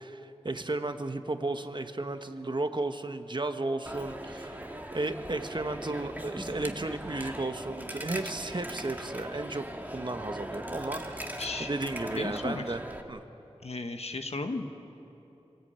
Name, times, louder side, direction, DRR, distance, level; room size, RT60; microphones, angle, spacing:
voice 1, 0.0-9.6 9.9-12.8 13.1-13.2, right 2 dB, 45° right, 7 dB, 1.2 m, -34 dB
Coin (dropping), 3.9-13.0, right 1 dB, 15° right, 1.8 m, -40 dB
voice 2, 11.4-11.7 12.2-12.8 13.6-14.6, left 3 dB, 70° left, 6 dB, 1.4 m, -35 dB
24.5 x 16.5 x 8.9 m, 3.0 s
wide cardioid pair, 55°, 11 cm